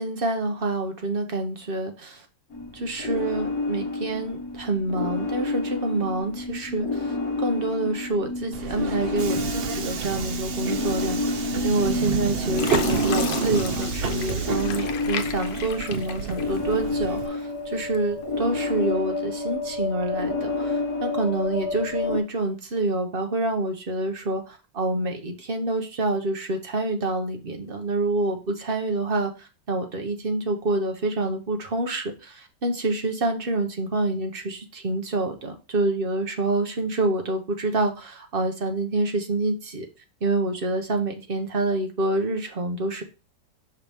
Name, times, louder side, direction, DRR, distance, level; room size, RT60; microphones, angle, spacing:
voice 1, 0.0-2.2 2.7-7.1 7.4-29.3 29.7-39.9 40.2-43.0, right 2 dB, 40° right, 4 dB, 1.0 m, -27 dB
sound 1, 2.5-22.2, left 3 dB, 55° left, 1.4 m, -29 dB
Subway metro underground, 8.5-17.3, right 6 dB, 90° right, 0.5 m, -30 dB
Fill (with liquid), 11.8-12.2 12.6-17.0 17.4-18.2 18.8-18.9, left 8 dB, 80° left, 1.4 m, -35 dB
5.8 x 5.7 x 3.5 m, 0.31 s
omnidirectional pair, 1.9 m